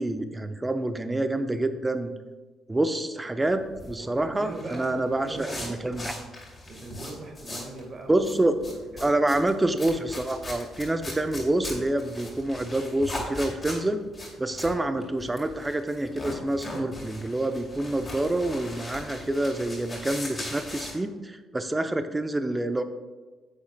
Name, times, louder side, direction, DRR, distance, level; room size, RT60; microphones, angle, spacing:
voice 1, 0.0-2.1 2.7-6.1 8.1-8.5 9.0-14.0 14.4-22.8, right 1 dB, 15° right, 9 dB, 0.6 m, -27 dB
sound 1, 3.5-7.8 8.1-20.9, left 1 dB, 25° left, 2.4 m, -39 dB
voice 2, 4.0-5.8 6.7-8.2 8.6-9.1, right 2 dB, 40° right, 2 dB, 1.5 m, -41 dB
9.6 x 8.0 x 2.2 m, 1.3 s
figure-of-eight pair, 45°, 0 cm